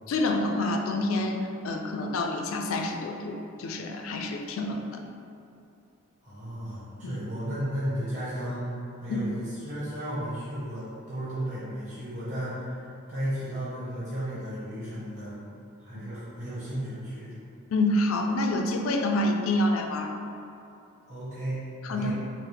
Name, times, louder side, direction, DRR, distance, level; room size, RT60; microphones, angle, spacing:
voice 1, 0.1-5.0 7.0-7.2 9.1-9.2 15.9-16.0 17.7-20.1 21.8-22.1, left 2 dB, 80° left, 3 dB, 0.4 m, -27 dB
voice 2, 6.2-15.4 15.8-17.4 21.1-21.6 21.9-22.1, equal, 35° right, -12 dB, 1.3 m, -34 dB
5.6 x 2.0 x 3.3 m, 2.7 s
head